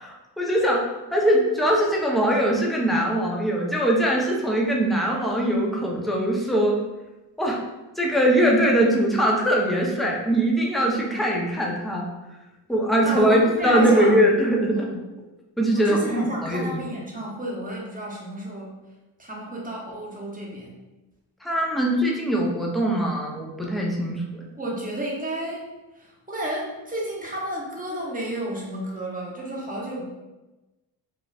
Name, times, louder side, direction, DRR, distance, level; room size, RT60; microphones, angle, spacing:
voice 1, 0.4-6.8 7.4-7.6 8.0-12.1 12.7-14.9 15.6-16.9 21.4-24.4, right 1 dB, ahead, -2 dB, 0.6 m, -22 dB
voice 2, 13.0-14.2 14.7-15.0 15.7-18.8 19.2-20.8 24.6-25.7 26.0-30.0, right 1 dB, 15° right, -3 dB, 0.9 m, -32 dB
3.2 x 2.4 x 2.4 m, 1.1 s
supercardioid pair, 55°, 50 cm